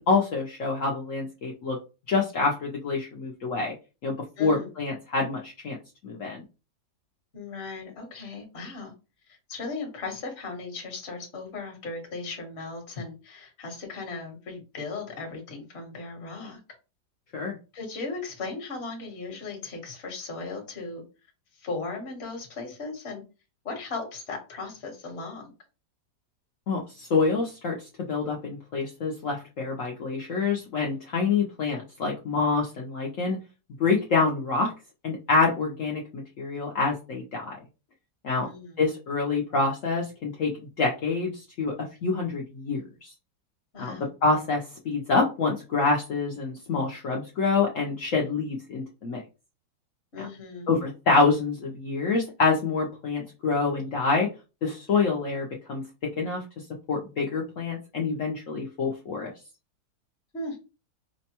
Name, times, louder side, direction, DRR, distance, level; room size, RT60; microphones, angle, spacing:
voice 1, 0.0-1.8 2.1-3.7 4.0-5.8 6.0-6.4 17.3-17.6 26.7-27.8 28.1-33.4 33.8-34.7 35.0-37.6 38.2-38.5 38.8-41.7 42.0-43.1 43.8-49.2 50.2-50.3 50.7-54.3 54.6-56.4 56.9-59.3, left 4 dB, 65° left, -1 dB, 0.8 m, -26 dB
voice 2, 4.4-4.7 7.3-8.9 9.3-16.6 17.7-21.0 21.6-23.2 23.6-25.5 38.3-38.8 43.7-44.1 50.1-50.7 60.3-60.6, left 3 dB, 40° left, 2 dB, 1.2 m, -37 dB
5.1 x 2.2 x 2.8 m, 0.30 s
omnidirectional pair, 1.9 m